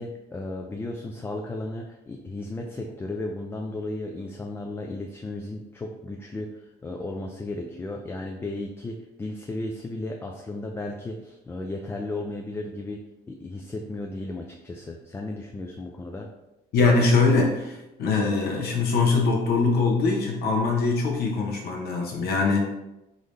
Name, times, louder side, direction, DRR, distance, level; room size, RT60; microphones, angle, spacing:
voice 1, 0.0-13.0 13.3-16.3, left 2 dB, 15° left, 2 dB, 0.3 m, -34 dB
voice 2, 16.7-22.6, left 4 dB, 70° left, 0 dB, 0.9 m, -22 dB
3.8 x 2.6 x 3.2 m, 0.95 s
cardioid pair, 110°, 17 cm